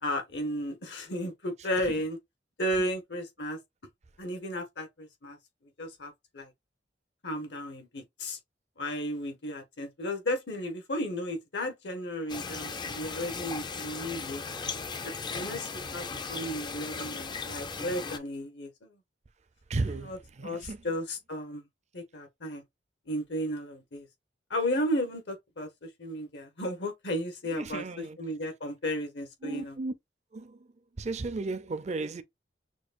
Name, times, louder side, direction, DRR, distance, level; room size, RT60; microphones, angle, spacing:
voice 1, 0.0-2.2 2.6-3.6 4.2-5.4 5.8-6.5 7.2-8.4 8.8-14.4 15.0-19.0 19.9-21.6 21.9-22.6 23.1-24.1 24.5-29.8, equal, 75° left, 1.4 m, -34 dB
sound 1, 12.3-18.2, left 4 dB, 25° left, 0.4 m, -37 dB
voice 2, 19.7-20.1 20.4-20.8 27.5-28.2 29.4-29.9 30.3-30.6 31.0-32.2, right 3 dB, 40° right, 0.5 m, -34 dB
6.1 x 2.3 x 2.5 m
head